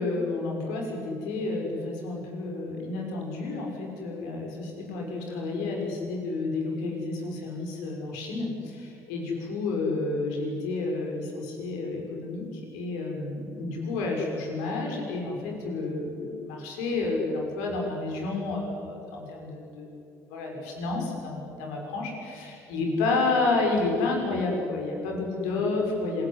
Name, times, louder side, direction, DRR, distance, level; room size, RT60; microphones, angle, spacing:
voice 1, 0.0-20.0 20.3-26.3, left 3 dB, 80° left, 0 dB, 6.1 m, -30 dB
26.5 x 22.0 x 10.0 m, 2.7 s
hypercardioid pair, 60°, 8 cm